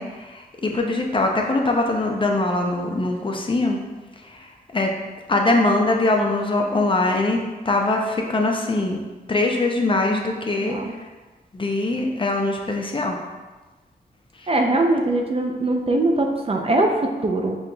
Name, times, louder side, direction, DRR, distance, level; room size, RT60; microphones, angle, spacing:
voice 1, 0.0-3.8 4.3-4.5 4.7-4.9 5.3-7.4 7.7-9.0 9.3-11.0 11.5-13.2, left 2 dB, 30° left, 1 dB, 0.5 m, -22 dB
voice 2, 10.6-10.9 14.5-17.6, right 2 dB, 35° right, 2 dB, 0.4 m, -21 dB
5.4 x 2.9 x 2.2 m, 1.2 s
wide cardioid pair, 90°, 17 cm